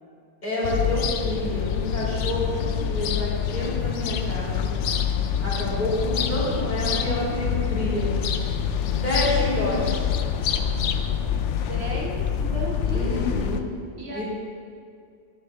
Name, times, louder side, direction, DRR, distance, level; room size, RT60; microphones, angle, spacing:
voice 1, 0.4-4.7 5.4-8.1 8.9-10.1 12.9-13.7 14.1-14.2, left 1 dB, 40° left, -8 dB, 3.2 m, -28 dB
sound 1, 0.6-13.6, left 8 dB, 85° left, 0.9 m, -26 dB
voice 2, 2.5-3.0 9.2-10.1 11.7-13.4 14.0-14.2, right 2 dB, 65° right, -2 dB, 1.6 m, -35 dB
11.0 x 10.0 x 3.6 m, 2.3 s
omnidirectional pair, 1.2 m